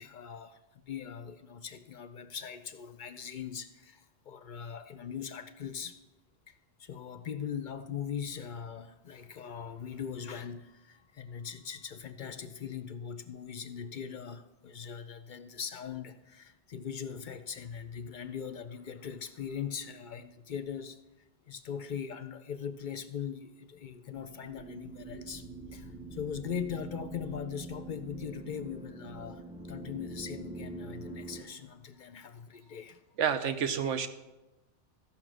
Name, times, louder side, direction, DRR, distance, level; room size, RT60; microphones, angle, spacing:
voice 1, 0.0-6.0 6.5-21.0 21.5-33.0, left 7 dB, 55° left, 10 dB, 0.5 m, -40 dB
sound 1, 24.2-31.4, right 2 dB, 5° right, 0.4 m, -44 dB
voice 2, 33.2-34.1, right 7 dB, 80° right, 9 dB, 1.1 m, -29 dB
13.5 x 5.7 x 6.2 m, 1.0 s
omnidirectional pair, 1.2 m